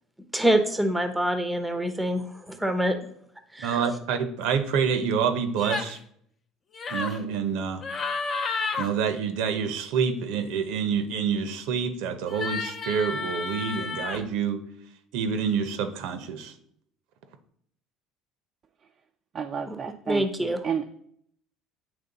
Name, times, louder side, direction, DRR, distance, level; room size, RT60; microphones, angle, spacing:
voice 1, 0.3-3.0 3.5-3.8 19.7-19.8 20.1-20.6, right 1 dB, 5° right, 7 dB, 0.7 m, -25 dB
voice 2, 3.6-6.0 6.9-7.8 8.8-14.6 15.1-16.5, right 6 dB, 80° right, 9 dB, 0.7 m, -27 dB
sound 1, 5.6-6.0 6.7-7.2 7.8-8.9 12.3-14.2, left 4 dB, 30° left, 0.7 m, -31 dB
voice 3, 19.3-20.9, right 7 dB, 35° right, 5 dB, 0.4 m, -31 dB
8.9 x 3.1 x 4.0 m, 0.67 s
cardioid pair, 130°, 0 cm